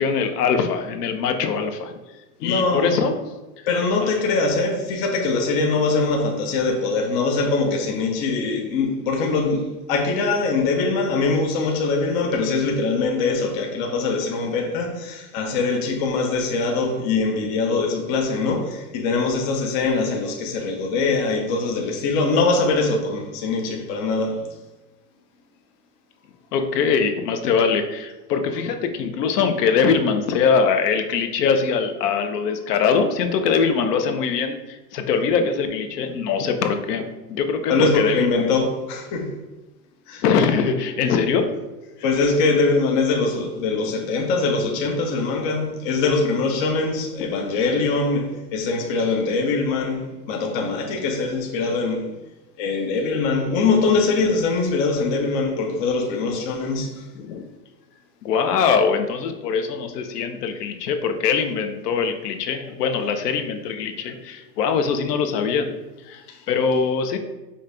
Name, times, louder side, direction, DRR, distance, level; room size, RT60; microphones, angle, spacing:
voice 1, 0.0-1.9 2.4-3.3 4.0-4.1 26.5-38.5 40.2-41.5 47.2-47.3 57.2-57.4 58.2-65.7 66.1-66.2 66.5-67.2, left 6 dB, 75° left, 6 dB, 0.8 m, -22 dB
voice 2, 2.4-3.0 3.7-24.4 37.7-39.3 40.1-40.2 42.0-52.1 52.6-57.0 66.3-66.4, left 3 dB, 25° left, 2 dB, 0.3 m, -22 dB
5.2 x 2.2 x 3.7 m, 1.1 s
hypercardioid pair, 130°, 49 cm